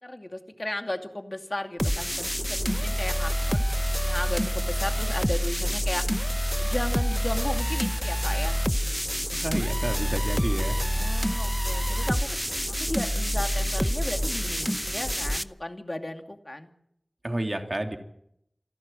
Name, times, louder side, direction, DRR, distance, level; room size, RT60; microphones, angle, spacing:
voice 1, 0.0-8.6 10.9-12.3 12.7-16.7, left 1 dB, 40° left, 6 dB, 2.4 m, -35 dB
sound 1, 1.8-15.4, equal, ahead, 0.8 m, -27 dB
voice 2, 9.3-10.8 17.2-18.0, right 1 dB, 50° right, 4 dB, 3.0 m, -30 dB
27.5 x 11.5 x 8.9 m, 0.75 s
wide cardioid pair, 45°, 0 cm